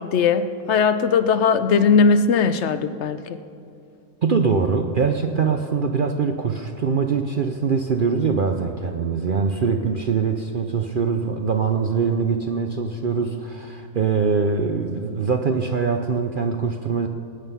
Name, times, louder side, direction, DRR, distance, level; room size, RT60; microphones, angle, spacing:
voice 1, 0.0-3.4, left 5 dB, 65° left, 11 dB, 0.7 m, -19 dB
voice 2, 4.2-17.1, right 5 dB, 60° right, 5 dB, 0.5 m, -23 dB
19.5 x 9.1 x 5.5 m, 2.4 s
omnidirectional pair, 1.6 m